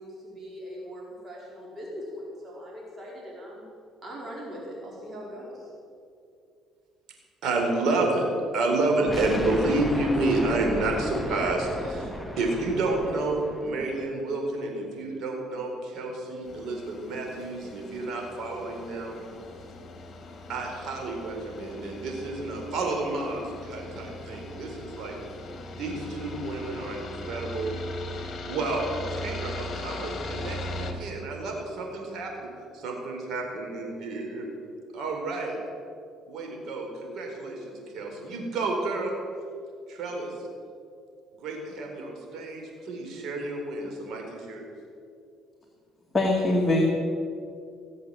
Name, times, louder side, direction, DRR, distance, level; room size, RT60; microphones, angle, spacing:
voice 1, 0.0-3.6 4.0-5.7, equal, 35° right, -4 dB, 4.7 m, -40 dB
voice 2, 7.4-8.3 8.5-19.2 20.5-25.2 25.7-27.8 28.1-34.5 34.9-35.6 36.3-39.1 39.9-40.5 41.4-44.7, right 2 dB, 65° right, 1 dB, 4.4 m, -30 dB
sound 1, 9.1-13.9, left 1 dB, ahead, 1.7 m, -34 dB
sound 2, 16.4-30.9, left 1 dB, 40° left, 2.5 m, -39 dB
voice 3, 46.1-46.9, left 1 dB, 15° left, -1 dB, 2.2 m, -22 dB
19.0 x 7.9 x 7.9 m, 2.4 s
cardioid pair, 90°, 0 cm